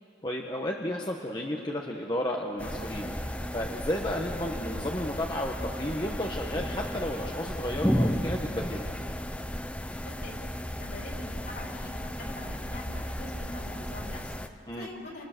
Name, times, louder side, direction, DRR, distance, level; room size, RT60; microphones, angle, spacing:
voice 1, 0.2-3.1 3.5-8.9 14.7-14.9, left 1 dB, 20° left, 0 dB, 1.2 m, -32 dB
sound 1, 2.6-14.5, equal, 5° left, 0.7 m, -34 dB
voice 2, 10.0-15.2, left 1 dB, 50° left, -1 dB, 3.9 m, -44 dB
28.5 x 27.5 x 6.8 m, 2.8 s
head